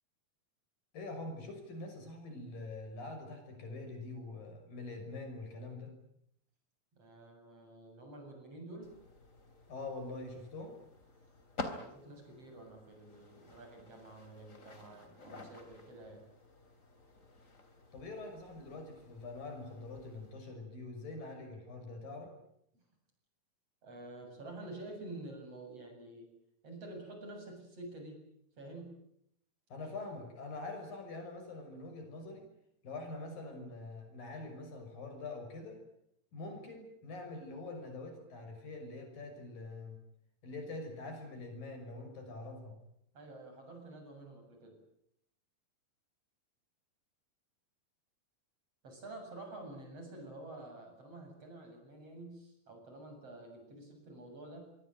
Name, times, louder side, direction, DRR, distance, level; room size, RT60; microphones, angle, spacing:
voice 1, 0.9-5.9 9.7-10.8 17.9-22.3 29.7-32.5 32.8-35.8 36.3-40.0 40.4-42.8, left 2 dB, 65° left, 5 dB, 7.7 m, -44 dB
voice 2, 6.9-8.9 11.7-16.2 22.7-22.8 23.8-26.3 26.6-28.2 28.6-29.0 43.1-44.8 48.8-54.6, right 2 dB, 40° right, 4 dB, 8.5 m, -49 dB
sound 1, 8.8-20.3, left 3 dB, 20° left, 3.2 m, -50 dB
26.0 x 23.0 x 9.1 m, 0.75 s
omnidirectional pair, 4.4 m